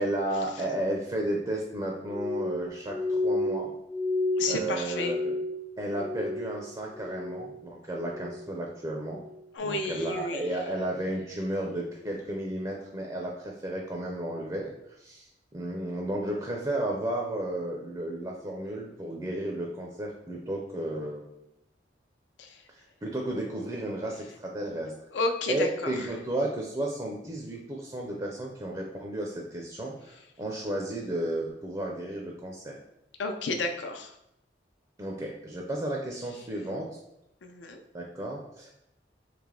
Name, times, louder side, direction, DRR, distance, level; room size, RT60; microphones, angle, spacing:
voice 1, 0.0-3.7 4.5-5.3 5.8-9.2 9.6-21.4 22.7-24.9 25.5-32.8 35.0-36.9 37.9-38.7, right 1 dB, 20° right, -1 dB, 0.5 m, -33 dB
Glass, 2.1-6.6 6.9-7.6 8.0-8.5 9.1-9.4, left 2 dB, 55° left, 1.1 m, -31 dB
voice 2, 4.4-5.1 9.5-10.6 22.4-22.6 25.1-26.1 33.2-34.1 37.4-37.8, left 3 dB, 80° left, 5 dB, 0.5 m, -31 dB
3.3 x 2.9 x 3.7 m, 0.81 s
head